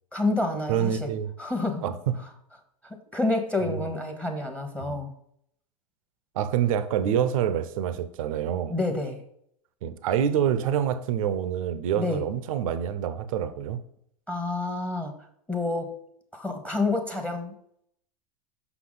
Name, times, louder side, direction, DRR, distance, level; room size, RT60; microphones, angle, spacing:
voice 1, 0.1-1.1 1.4-1.8 2.8-5.1 8.7-9.2 12.0-12.2 14.3-15.1 15.5-15.9 16.3-17.5, left 2 dB, 5° left, 1.0 m, -28 dB
voice 2, 0.7-1.3 1.8-2.1 3.6-3.7 6.4-8.8 9.8-13.8, right 9 dB, 65° right, 0.7 m, -26 dB
6.0 x 5.8 x 3.9 m
hypercardioid pair, 100°, 19 cm